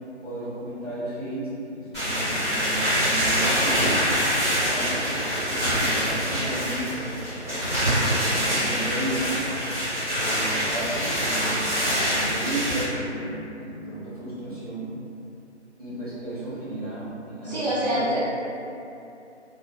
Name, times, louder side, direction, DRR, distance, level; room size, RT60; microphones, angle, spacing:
voice 1, 0.2-4.0 4.6-5.0 5.5-7.3 7.8-9.4 10.2-14.9 15.8-18.1, right 1 dB, 35° right, -10 dB, 0.5 m, -34 dB
sound 1, 1.9-12.8, equal, 20° left, 1.2 m, -25 dB
voice 2, 17.4-18.2, equal, 40° left, -10 dB, 0.4 m, -25 dB
2.3 x 2.3 x 2.4 m, 2.7 s
hypercardioid pair, 180°, 35 cm